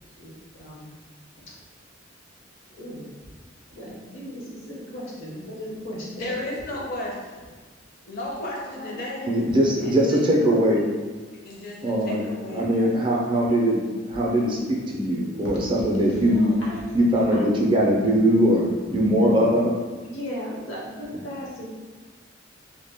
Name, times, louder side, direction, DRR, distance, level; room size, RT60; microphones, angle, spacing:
voice 1, 0.2-0.9 1.4-1.5 2.8-3.1 3.7-6.5 8.6-9.0 9.8-10.7 16.1-16.8 17.3-17.7 20.0-21.7, equal, 80° left, -4 dB, 0.8 m, -37 dB
voice 2, 6.1-7.5 8.0-9.3 9.8-10.2 11.4-13.0, left 1 dB, 50° left, -2 dB, 0.5 m, -34 dB
voice 3, 9.3-10.8 11.8-12.2 12.5-16.5 16.9-19.8, equal, 25° right, -2 dB, 0.4 m, -21 dB
2.1 x 2.1 x 3.3 m, 1.4 s
head